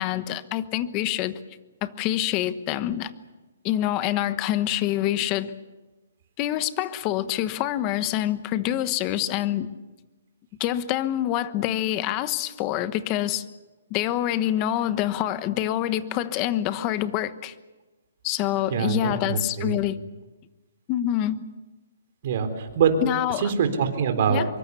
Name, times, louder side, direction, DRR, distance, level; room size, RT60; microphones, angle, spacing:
voice 1, 0.0-1.4 1.8-3.1 3.6-5.5 6.4-9.7 10.6-13.4 13.9-17.5 18.2-20.0 20.9-21.4 23.0-23.5 24.3-24.5, left 12 dB, 25° left, 13 dB, 1.1 m, -26 dB
voice 2, 18.7-19.8 22.2-22.9 23.4-24.4, right 7 dB, 45° right, 6 dB, 3.8 m, -24 dB
25.0 x 23.5 x 7.0 m, 1.2 s
hypercardioid pair, 165°, 0 cm